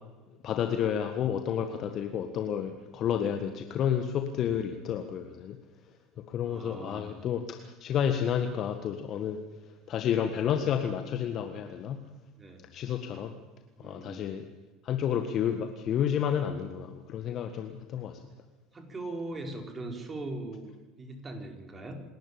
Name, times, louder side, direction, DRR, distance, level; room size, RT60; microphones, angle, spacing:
voice 1, 0.4-5.6 6.3-9.4 9.9-12.0 12.7-13.3 13.8-14.4 14.8-18.1, left 8 dB, 45° left, 7 dB, 1.7 m, -30 dB
voice 2, 6.4-7.1 12.4-12.6 13.8-14.2 18.7-22.0, right 2 dB, 25° right, 3 dB, 5.0 m, -40 dB
27.5 x 13.0 x 8.9 m, 1.2 s
hypercardioid pair, 70°, 0 cm